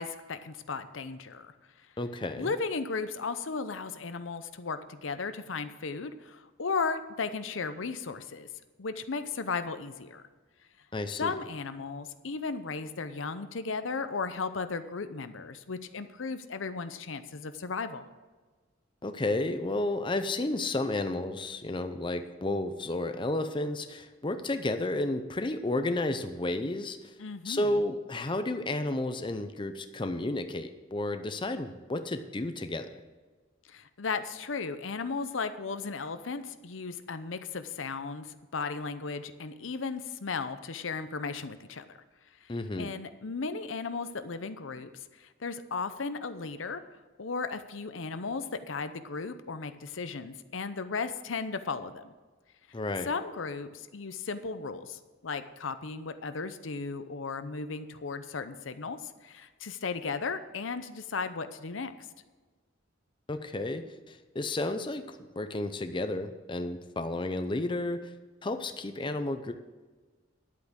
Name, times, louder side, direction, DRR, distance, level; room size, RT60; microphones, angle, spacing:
voice 1, 0.0-1.5 2.4-8.5 8.8-10.2 11.2-18.0 27.2-27.8 33.7-42.0 42.4-44.9 45.2-46.8 47.2-52.0 53.1-61.9, left 4 dB, 80° left, 11 dB, 0.7 m, -35 dB
voice 2, 2.0-2.5 10.9-11.3 19.0-27.0 27.4-32.9 42.5-42.9 52.7-53.1 63.3-65.0 65.4-68.0 68.4-69.5, left 2 dB, 25° left, 8 dB, 0.6 m, -32 dB
10.5 x 8.5 x 6.2 m, 1.3 s
head